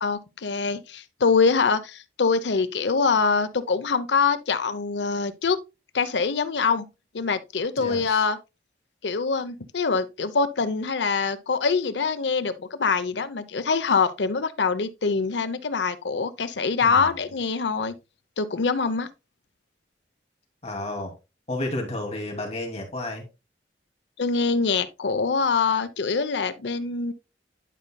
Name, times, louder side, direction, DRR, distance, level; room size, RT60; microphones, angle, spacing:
voice 1, 0.0-5.6 5.9-6.9 7.1-8.4 9.0-18.0 18.4-19.1 24.2-27.1, left 5 dB, 85° left, 0.7 m, -24 dB
voice 2, 20.6-21.1 21.5-23.2, left 1 dB, 35° left, 2.4 m, -31 dB
11.0 x 5.3 x 2.2 m
head